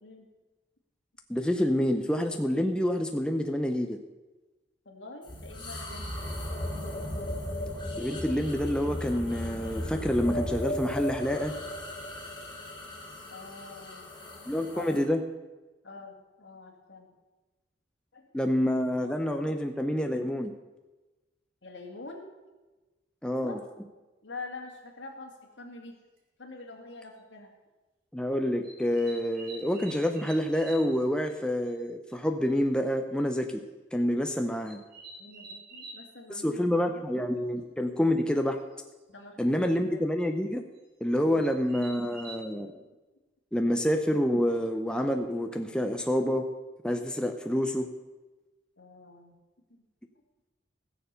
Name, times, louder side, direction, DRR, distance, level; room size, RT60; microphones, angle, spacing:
voice 1, 1.3-4.0 8.0-11.5 14.5-15.2 18.3-20.5 23.2-23.6 28.1-33.6 33.9-34.8 36.3-38.6 39.4-40.6 41.0-42.8 43.5-46.5 46.8-47.9, equal, 5° left, 5 dB, 0.6 m, -28 dB
voice 2, 4.9-6.2 13.3-14.2 14.7-15.1 15.8-17.1 18.1-18.7 21.6-22.2 23.4-23.6 24.2-26.0 26.4-27.5 35.2-37.1 37.9-38.0 39.1-40.1 48.8-49.4, left 3 dB, 65° left, 2 dB, 2.2 m, -46 dB
sound 1, 5.2-15.0, left 1 dB, 25° left, 3.2 m, -36 dB
sound 2, 24.7-24.8 26.2-26.3 27.0-27.2 28.6-31.0 31.3-31.4 31.7-31.8 32.1-32.2 32.4-32.5 33.4-33.6 34.6-36.0 38.1-38.2 38.5-38.9 40.7-40.8 41.4-42.4, right 3 dB, 50° right, 2.9 m, -47 dB
16.0 x 6.9 x 6.8 m, 1.2 s
head